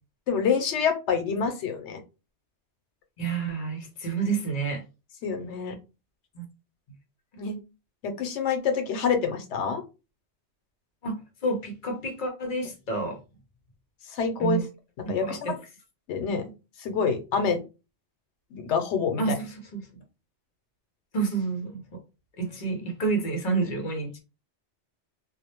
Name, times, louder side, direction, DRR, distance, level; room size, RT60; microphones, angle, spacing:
voice 1, 0.3-2.0 5.2-5.7 7.4-7.6 8.0-9.8 14.0-14.6 15.1-15.4 16.1-16.5 16.8-17.6 18.5-19.3, left 6 dB, 85° left, 6 dB, 0.9 m, -27 dB
voice 2, 3.2-4.8 6.3-6.4 11.0-11.1 11.4-13.2 14.4-14.6 15.2-15.5 19.2-19.8 21.1-21.8 22.4-24.2, right 4 dB, 50° left, 2 dB, 0.8 m, -29 dB
2.3 x 2.0 x 2.9 m, 0.30 s
omnidirectional pair, 1.2 m